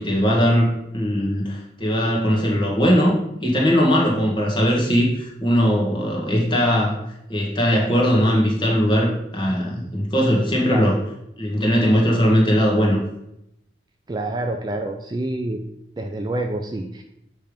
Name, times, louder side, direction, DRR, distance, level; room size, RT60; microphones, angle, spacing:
voice 1, 0.0-7.0 7.3-11.0 11.4-13.0, equal, 25° left, -2 dB, 1.5 m, -19 dB
voice 2, 10.6-11.0 14.1-15.6 16.0-17.0, right 2 dB, 20° right, 4 dB, 0.4 m, -27 dB
8.0 x 3.4 x 5.1 m, 0.82 s
head